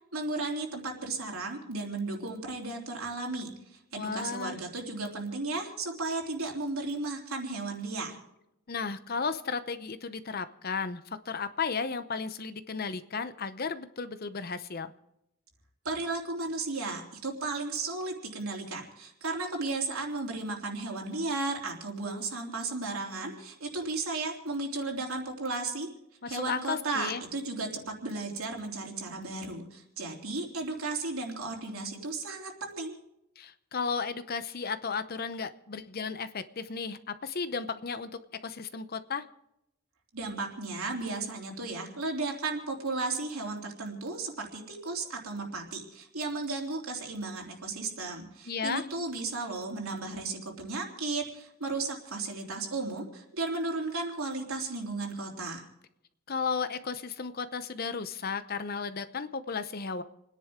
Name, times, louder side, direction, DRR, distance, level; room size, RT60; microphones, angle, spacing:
voice 1, 0.1-8.2 15.8-25.9 26.3-32.9 40.1-55.7, right 3 dB, 80° right, 0 dB, 3.2 m, -34 dB
voice 2, 3.9-4.6 8.7-14.9 26.2-27.2 33.4-38.1 38.4-39.2 48.5-48.8 56.3-60.0, left 5 dB, 45° left, 12 dB, 0.7 m, -34 dB
29.5 x 10.5 x 3.7 m, 0.83 s
head